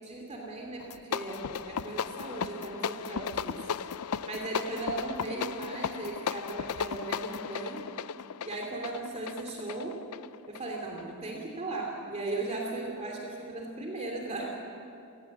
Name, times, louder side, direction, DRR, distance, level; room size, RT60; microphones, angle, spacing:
voice 1, 0.0-3.7 4.2-7.9 8.4-10.0 10.5-14.5, right 2 dB, 30° right, 0 dB, 2.9 m, -37 dB
sound 1, 0.8-11.1, left 7 dB, 80° left, 0.5 m, -36 dB
28.5 x 18.5 x 7.3 m, 2.7 s
head